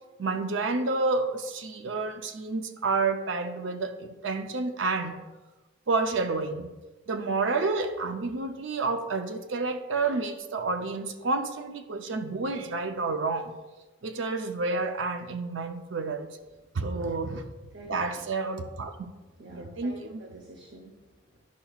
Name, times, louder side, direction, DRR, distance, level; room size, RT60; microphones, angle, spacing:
voice 1, 0.2-5.2 5.9-6.7 7.1-13.6 14.0-16.3 16.7-17.4 17.9-18.9 19.5-20.2, right 3 dB, 85° right, 7 dB, 0.6 m, -29 dB
voice 2, 17.7-18.3 19.4-21.4, equal, 65° right, 0 dB, 0.9 m, -48 dB
10.5 x 5.8 x 2.4 m, 1.2 s
head